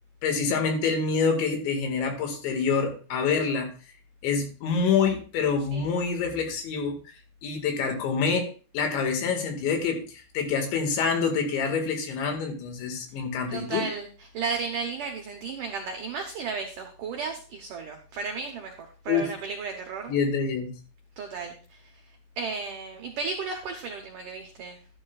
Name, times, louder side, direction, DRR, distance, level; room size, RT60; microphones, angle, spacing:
voice 1, 0.2-3.7 4.2-7.0 7.4-13.8 19.1-19.3 20.1-20.7, left 5 dB, 80° left, 4 dB, 4.1 m, -26 dB
voice 2, 13.5-18.7 19.0-20.1 21.2-21.9 22.4-24.8, right 5 dB, 85° right, 3 dB, 1.8 m, -34 dB
12.0 x 11.0 x 2.4 m, 0.37 s
omnidirectional pair, 5.2 m